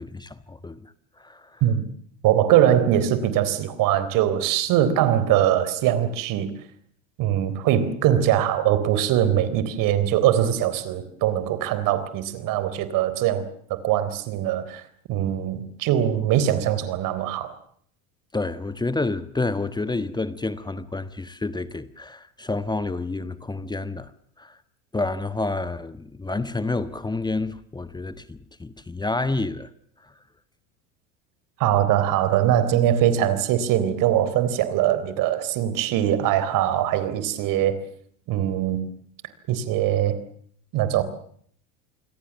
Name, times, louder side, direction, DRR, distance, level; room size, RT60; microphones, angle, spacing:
voice 1, 0.0-1.6 18.3-24.1 24.4-24.6 24.9-29.7 30.0-30.1, left 3 dB, 10° left, 1.3 m, -29 dB
voice 2, 2.2-6.5 7.2-14.8 15.1-17.5 31.6-37.8 38.3-38.9 39.5-40.2 40.7-41.0, right 11 dB, 60° right, 3.9 m, -22 dB
28.0 x 22.0 x 7.2 m
hypercardioid pair, 90°, 37 cm